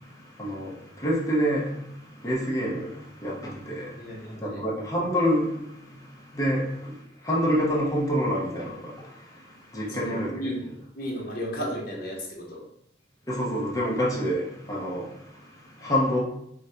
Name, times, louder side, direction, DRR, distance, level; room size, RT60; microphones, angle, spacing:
voice 1, 0.0-10.4 13.3-16.2, equal, 20° left, 0.7 m, -28 dB
voice 2, 3.9-4.6 9.9-10.6 10.9-12.6, equal, 50° left, 0.8 m, -34 dB
4.7 x 2.2 x 2.7 m
head